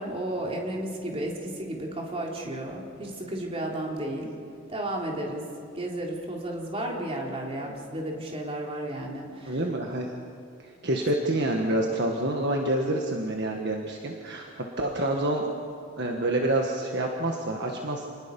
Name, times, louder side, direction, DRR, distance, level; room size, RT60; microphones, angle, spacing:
voice 1, 0.0-4.3 4.7-5.4 5.7-9.7, right 1 dB, 30° right, -1 dB, 3.3 m, -33 dB
voice 2, 9.4-10.1 10.6-15.5 16.0-18.1, right 1 dB, 50° right, 1 dB, 1.6 m, -27 dB
28.5 x 20.0 x 5.5 m, 2.4 s
head